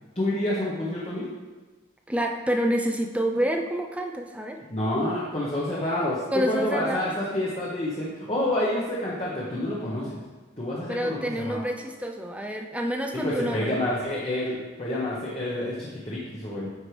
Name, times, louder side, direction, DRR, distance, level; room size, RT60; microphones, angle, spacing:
voice 1, 0.1-1.3 4.7-10.2 10.6-11.6 13.1-16.7, left 1 dB, 30° left, -6 dB, 1.1 m, -28 dB
voice 2, 2.1-4.6 6.3-7.1 10.9-13.7, equal, 5° right, 2 dB, 0.5 m, -28 dB
9.4 x 4.7 x 3.3 m, 1.3 s
head